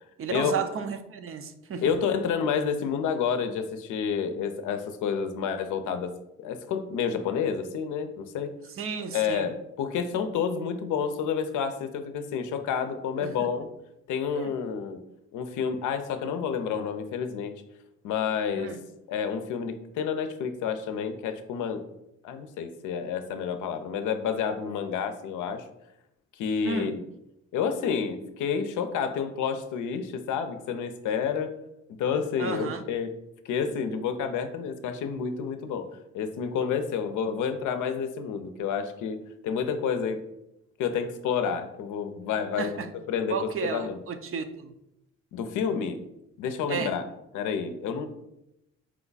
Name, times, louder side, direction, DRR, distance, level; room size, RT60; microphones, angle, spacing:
voice 1, 0.2-1.8 8.7-9.5 13.2-13.5 14.3-14.5 18.6-18.8 26.6-26.9 32.4-32.8 42.6-42.9 43.3-44.7 46.7-47.0, right 5 dB, 45° right, 9 dB, 0.5 m, -33 dB
voice 2, 1.8-6.1 6.4-8.6 9.1-13.7 14.1-15.0 15.3-17.5 18.0-18.8 19.1-21.8 22.2-25.6 26.4-27.0 27.5-31.5 32.0-33.1 33.5-35.9 36.1-39.2 39.4-40.2 40.8-42.8 43.1-44.0 45.3-46.0 46.4-47.0 47.3-48.1, left 6 dB, 80° left, 8 dB, 0.6 m, -29 dB
4.6 x 2.3 x 3.9 m, 0.85 s
cardioid pair, 90°, 30 cm